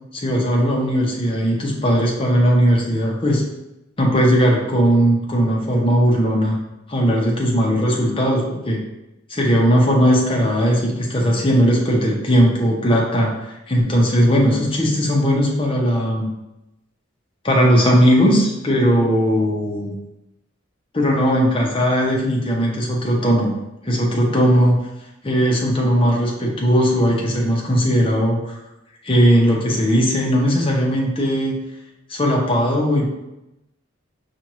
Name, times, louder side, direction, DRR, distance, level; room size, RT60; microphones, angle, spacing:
voice 1, 0.1-3.4 4.0-6.6 6.9-8.8 9.3-16.3 17.4-19.9 20.9-23.5 23.8-24.8 25.2-28.4 29.0-31.6 32.1-33.1, equal, 25° left, -2 dB, 0.8 m, -18 dB
5.2 x 2.5 x 3.0 m, 0.92 s
head